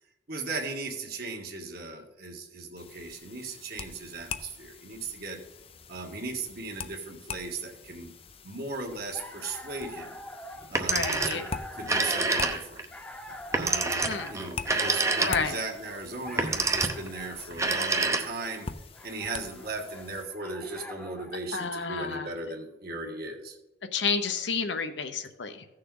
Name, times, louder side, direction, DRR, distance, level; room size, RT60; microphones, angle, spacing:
voice 1, 0.3-5.4 5.9-8.1 8.4-10.2 10.7-11.5 11.8-12.8 13.5-18.7 19.0-23.6, right 3 dB, 60° right, 2 dB, 1.7 m, -37 dB
sound 1, 2.8-20.2, left 5 dB, 30° left, 0.5 m, -44 dB
sound 2, 8.9-21.4, left 1 dB, 5° left, 0.9 m, -44 dB
Telephone, 10.6-11.5 11.8-12.8 13.5-15.6 16.3-17.1 17.5-18.5, right 3 dB, 15° right, 0.8 m, -27 dB
voice 2, 10.9-11.4 14.0-14.3 15.2-15.6 21.5-22.3 23.9-25.7, left 5 dB, 75° left, 7 dB, 0.9 m, -30 dB
15.0 x 6.6 x 3.8 m, 1.0 s
head